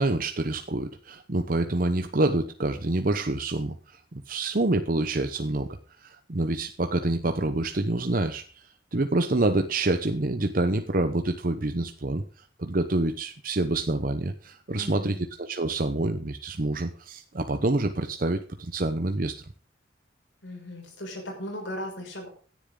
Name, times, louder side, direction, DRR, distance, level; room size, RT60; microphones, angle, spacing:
voice 1, 0.0-5.7 6.0-12.2 12.6-19.3, right 2 dB, 50° right, 7 dB, 0.9 m, -27 dB
voice 2, 14.7-15.2 20.4-22.3, equal, 75° left, 2 dB, 6.0 m, -37 dB
17.0 x 10.5 x 3.8 m, 0.41 s
head